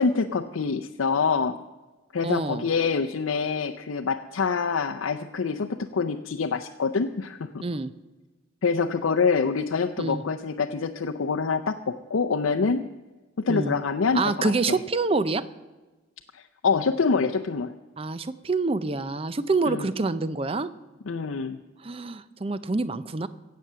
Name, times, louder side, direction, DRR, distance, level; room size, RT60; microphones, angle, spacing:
voice 1, 0.0-1.6 2.1-7.6 8.6-12.9 13.4-14.8 16.3-17.7 19.7-19.9 21.1-21.6, left 5 dB, 80° left, 5 dB, 0.6 m, -26 dB
voice 2, 2.2-2.6 7.6-7.9 10.0-10.2 13.5-13.7 14.1-15.4 18.0-20.7 21.8-23.3, right 3 dB, 25° right, 14 dB, 0.5 m, -26 dB
17.0 x 7.6 x 6.8 m, 1.2 s
head